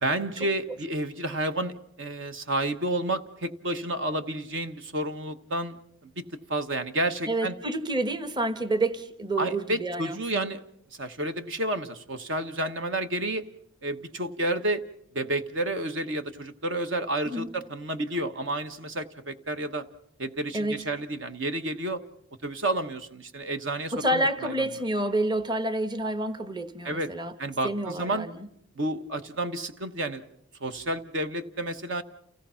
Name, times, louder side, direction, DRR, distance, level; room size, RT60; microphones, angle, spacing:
voice 1, 0.0-5.8 6.0-7.5 9.4-10.6 10.9-13.4 13.8-14.8 15.1-19.8 20.2-22.0 22.4-24.5 26.8-27.1 27.4-28.3 28.8-30.2 30.6-32.0, right 1 dB, 55° right, 9 dB, 1.2 m, -30 dB
voice 2, 7.3-10.6 17.3-17.5 20.5-20.8 23.9-27.3 27.6-28.5, right 1 dB, 20° right, 10 dB, 1.1 m, -29 dB
29.0 x 17.5 x 5.7 m, 0.72 s
head